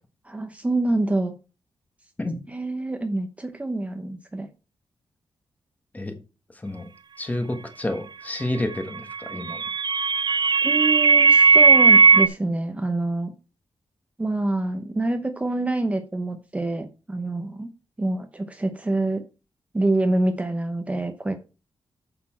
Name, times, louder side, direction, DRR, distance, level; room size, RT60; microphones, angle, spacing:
voice 1, 0.3-1.3 2.5-4.5 10.6-13.3 14.2-17.7 18.0-19.2 19.7-21.4, right 2 dB, 15° right, 6 dB, 0.8 m, -26 dB
voice 2, 6.5-6.9 7.2-9.6, left 1 dB, 15° left, 6 dB, 1.3 m, -29 dB
sound 1, 9.1-12.3, right 4 dB, 50° right, 0.6 m, -16 dB
8.4 x 6.9 x 4.3 m, 0.31 s
wide cardioid pair, 170°, 9 cm